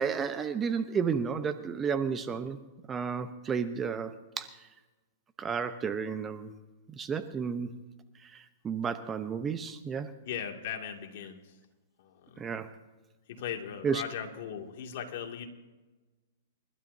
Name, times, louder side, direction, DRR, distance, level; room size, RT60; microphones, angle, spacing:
voice 1, 0.0-2.6 2.9-4.7 5.4-6.5 7.0-7.7 8.2-10.1 12.4-12.7 13.8-14.0, right 6 dB, 20° right, 9 dB, 0.9 m, -32 dB
voice 2, 10.2-11.6 12.0-12.5 13.3-15.5, left 8 dB, 60° left, 2 dB, 2.4 m, -38 dB
29.5 x 12.5 x 2.8 m, 1.2 s
hypercardioid pair, 140°, 0 cm